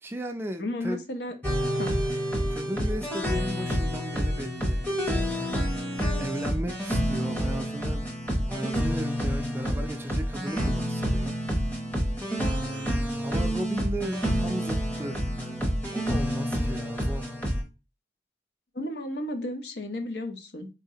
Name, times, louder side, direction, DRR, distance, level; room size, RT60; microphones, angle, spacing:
voice 1, 0.0-1.0 2.5-4.8 5.3-5.7 6.2-8.0 8.5-11.4 13.1-15.6 15.9-17.4, right 1 dB, 15° right, 0.3 m, -36 dB
voice 2, 0.6-1.3 1.7-1.9 6.0-6.3 18.7-20.7, left 1 dB, 70° left, 0.7 m, -33 dB
sound 1, 1.4-17.6, equal, 10° left, 0.7 m, -28 dB
4.0 x 2.8 x 2.7 m
head